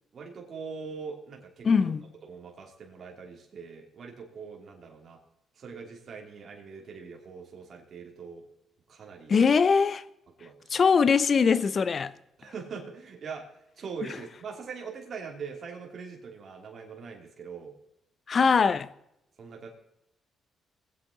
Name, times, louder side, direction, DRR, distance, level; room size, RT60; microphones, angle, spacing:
voice 1, 0.1-1.9 2.2-5.2 5.6-8.4 8.9-9.3 10.4-10.7 12.4-13.5 13.8-17.7 19.4-19.7, right 5 dB, 50° right, 2.9 m, -42 dB
voice 2, 1.6-2.0 9.3-10.0 10.7-12.1 18.3-18.9, left 5 dB, 45° left, 0.7 m, -22 dB
20.5 x 8.5 x 3.9 m
cardioid pair, 90°, 0 cm